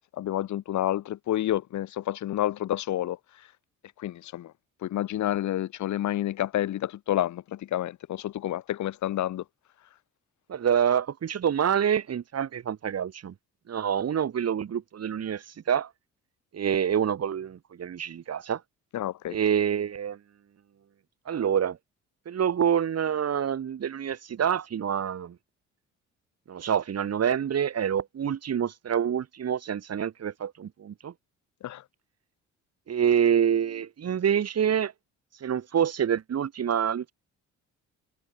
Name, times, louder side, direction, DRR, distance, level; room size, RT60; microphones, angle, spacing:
voice 1, 0.1-3.2 4.0-4.5 4.8-9.4 18.9-19.4 31.6-31.8, left 13 dB, 70° left, 1.4 m, -29 dB
voice 2, 10.5-13.3 13.7-15.9 16.5-18.6 19.3-20.2 21.3-21.8 22.3-25.4 26.5-31.1 32.9-34.9 35.4-37.1, right 8 dB, 55° right, 5.4 m, -27 dB
cardioid pair, 90°, 30 cm